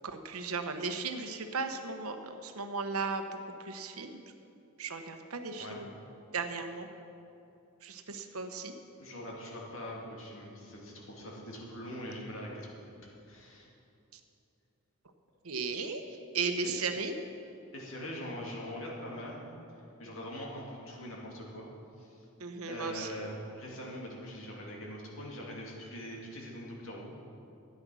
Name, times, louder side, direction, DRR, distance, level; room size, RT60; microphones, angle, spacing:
voice 1, 0.0-3.2 3.6-4.2 4.8-5.9 6.3-6.9 7.8-8.7 14.1-14.2 15.4-17.2 22.4-23.1, right 4 dB, 85° right, 7 dB, 1.0 m, -36 dB
voice 2, 9.0-12.7 13.3-13.7 16.6-16.7 17.7-19.5 20.0-21.7 22.0-22.2 22.7-27.1, equal, 65° left, -2 dB, 2.5 m, -42 dB
13.0 x 9.6 x 6.3 m, 2.7 s
head